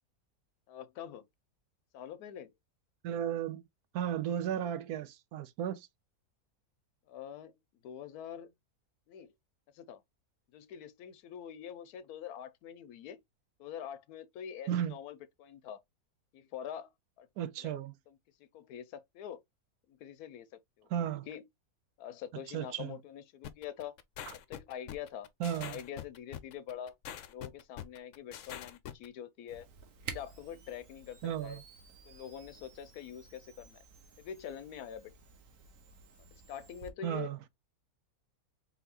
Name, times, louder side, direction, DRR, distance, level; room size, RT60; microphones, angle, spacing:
voice 1, 0.7-1.3 1.9-2.5 7.1-7.6 7.8-8.5 9.1-9.3 9.7-10.0 10.5-13.2 13.6-15.8 16.3-16.9 17.2-17.3 17.6-17.7 18.1-19.4 19.9-20.5 20.8-20.9 21.3-21.5 22.0-24.0 24.3-25.3 25.7-27.0 27.3-29.7 30.1-31.6 32.1-33.8 34.2-35.1 36.3-37.3, left 9 dB, 85° left, 1.1 m, -45 dB
voice 2, 3.0-3.6 3.9-5.9 14.7-14.9 17.4-17.9 20.9-21.3 22.5-23.0 25.4-25.8 31.2-31.6 37.0-37.4, right 10 dB, 80° right, 1.1 m, -34 dB
sound 1, 23.4-29.1, left 10 dB, 65° left, 0.9 m, -44 dB
Camera, 29.5-36.9, right 5 dB, 60° right, 1.3 m, -51 dB
4.1 x 3.9 x 2.8 m
omnidirectional pair, 1.6 m